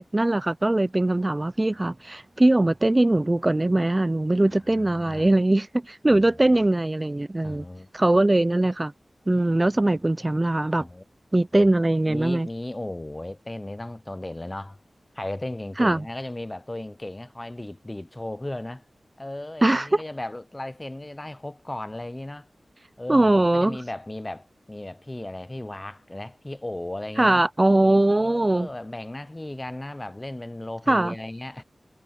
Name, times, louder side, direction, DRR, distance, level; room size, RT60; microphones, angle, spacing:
voice 1, 0.0-7.6 7.9-8.9 9.3-10.9 11.3-12.5 15.8-16.0 19.6-20.0 23.1-23.8 27.2-28.7 30.9-31.1, right 1 dB, 25° right, 0.4 m, -21 dB
voice 2, 4.4-5.3 6.1-6.2 7.4-7.9 10.8-11.0 11.6-11.7 12.1-14.8 15.1-18.8 19.2-22.5 23.0-27.4 28.2-31.6, left 1 dB, 25° left, 0.6 m, -36 dB
wide cardioid pair, 60°, 0 cm